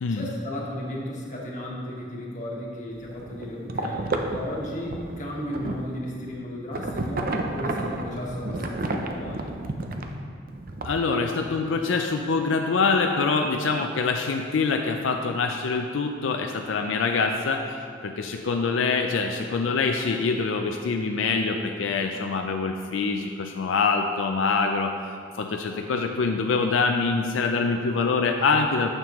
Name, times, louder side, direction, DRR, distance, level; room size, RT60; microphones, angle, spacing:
voice 1, 0.1-9.5, left 1 dB, 45° left, -4 dB, 1.5 m, -34 dB
sound 1, 2.9-5.9 6.7-10.1 10.5-11.0, right 2 dB, 50° right, 0.6 m, -31 dB
voice 2, 10.8-17.8 18.0-24.9 25.4-28.9, left 4 dB, 90° left, 4 dB, 0.4 m, -25 dB
9.1 x 6.7 x 3.0 m, 2.3 s
head